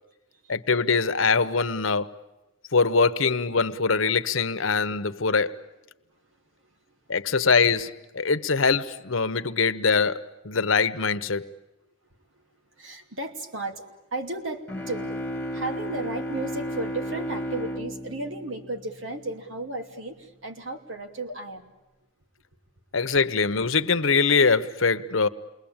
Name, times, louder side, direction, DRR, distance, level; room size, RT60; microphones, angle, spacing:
voice 1, 0.5-2.1 2.7-5.6 7.1-11.5 22.9-25.3, left 4 dB, 85° left, 1.1 m, -23 dB
voice 2, 6.1-7.0 12.2-15.2 15.5-21.7, right 2 dB, 70° right, 2.9 m, -35 dB
sound 1, 14.7-19.4, equal, 5° left, 1.6 m, -33 dB
28.5 x 22.0 x 9.0 m
head